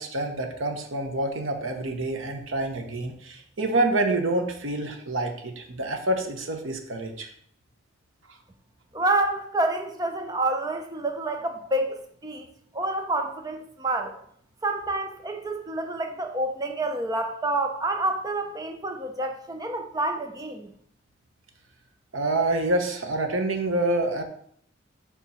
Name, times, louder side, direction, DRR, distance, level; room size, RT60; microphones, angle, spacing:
voice 1, 0.0-7.3 22.1-24.2, right 2 dB, 80° right, 1.0 m, -27 dB
voice 2, 8.9-12.0 12.2-12.5 12.7-14.1 14.6-20.7, right 2 dB, 20° right, 0.7 m, -28 dB
7.2 x 3.6 x 5.6 m
head